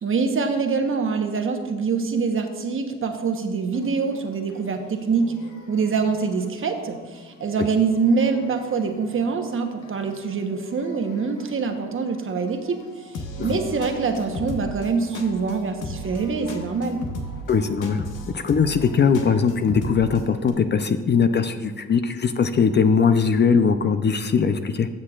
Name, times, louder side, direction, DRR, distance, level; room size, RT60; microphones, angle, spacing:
voice 1, 0.0-5.3 5.7-12.8 13.4-17.0, right 5 dB, 45° right, 5 dB, 1.1 m, -24 dB
sound 1, 3.7-20.5, left 1 dB, 80° left, 1.2 m, -38 dB
voice 2, 17.5-18.0 18.3-24.9, left 6 dB, 35° left, 10 dB, 0.5 m, -20 dB
16.5 x 6.6 x 2.4 m, 1.5 s
cardioid pair, 90°, 30 cm